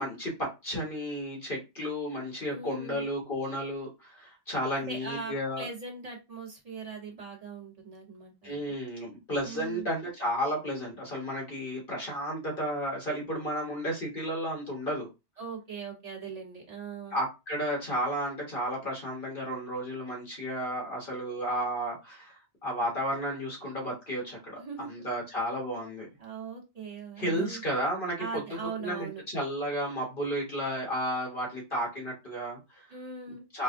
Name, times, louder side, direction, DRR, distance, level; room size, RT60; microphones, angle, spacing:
voice 1, 0.0-5.7 8.4-15.1 17.1-22.3 22.6-26.1 27.2-28.2 28.8-32.9 33.3-33.6, equal, 50° left, 1.2 m, -33 dB
voice 2, 2.5-3.1 4.7-8.6 9.4-9.9 15.4-17.2 24.6-25.1 26.2-27.6 28.2-29.2 32.9-33.5, right 5 dB, 30° right, 1.3 m, -40 dB
4.2 x 2.1 x 2.5 m
omnidirectional pair, 1.2 m